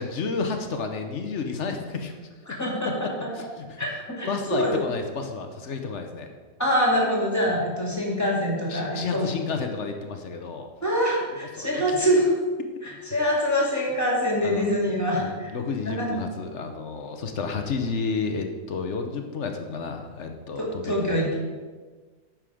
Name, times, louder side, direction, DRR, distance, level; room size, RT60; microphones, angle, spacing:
voice 1, 0.0-2.1 3.0-3.1 3.4-3.8 4.3-6.3 8.7-10.7 11.6-11.8 13.0-13.2 14.4-14.7 15.2-21.2, left 4 dB, 60° left, 5 dB, 1.1 m, -31 dB
voice 2, 2.5-3.1 3.8-4.8 6.6-9.3 10.8-12.3 12.8-15.5 15.9-16.2 20.6-21.4, equal, 10° left, -3 dB, 2.1 m, -25 dB
9.2 x 6.6 x 4.9 m, 1.4 s
omnidirectional pair, 1.5 m